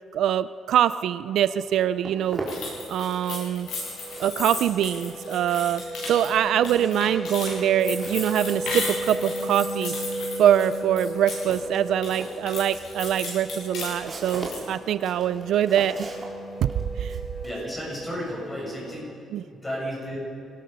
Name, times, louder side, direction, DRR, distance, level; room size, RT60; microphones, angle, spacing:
voice 1, 0.1-2.4 2.9-3.7 4.2-5.8 6.1-9.9 10.4-16.1 17.0-17.2 19.3-19.4, right 10 dB, 70° right, 14 dB, 0.4 m, -24 dB
sound 1, 1.6-18.9, right 1 dB, 55° left, 5.2 m, -36 dB
Walk footsteps, 1.6-3.3 3.6-19.0, right 2 dB, 20° right, 3.3 m, -41 dB
sound 2, 2.5-11.6 11.9-14.7, left 3 dB, 80° left, 7.2 m, -35 dB
voice 2, 17.4-19.2 19.5-20.2, equal, 15° left, -4 dB, 7.3 m, -33 dB
27.0 x 19.0 x 5.4 m, 2.6 s
cardioid pair, 160°, 0 cm